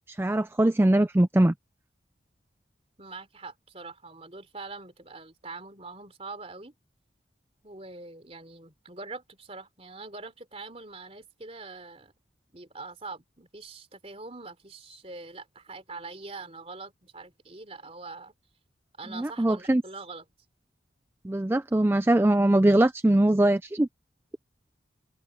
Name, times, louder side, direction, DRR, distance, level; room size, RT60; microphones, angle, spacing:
voice 1, 0.1-1.5 19.1-19.8 21.2-23.9, right 1 dB, 10° right, 0.4 m, -22 dB
voice 2, 3.0-6.7 7.6-12.1 12.5-18.3 19.0-20.3, right 3 dB, 30° right, 3.6 m, -43 dB
open air
head